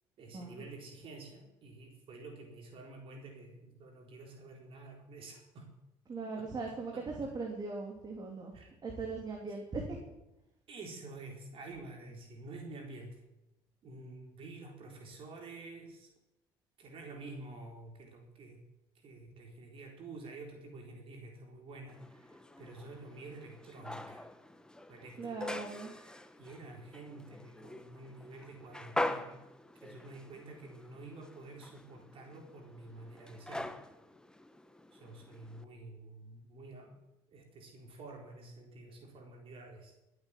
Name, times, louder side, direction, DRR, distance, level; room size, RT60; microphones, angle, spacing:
voice 1, 0.2-5.7 6.4-7.1 8.5-8.7 10.7-13.2 13.8-16.1 16.8-18.6 18.9-24.3 24.9-29.5 29.8-33.8 34.9-37.0 37.3-40.0, right 2 dB, 55° right, 1 dB, 4.1 m, -49 dB
voice 2, 6.1-8.5 8.8-10.0 25.2-25.9, right 3 dB, 40° right, 1 dB, 3.2 m, -39 dB
sound 1, 21.9-35.6, left 1 dB, 5° left, 1.3 m, -44 dB
21.0 x 8.6 x 7.6 m, 0.93 s
supercardioid pair, 70°, 11 cm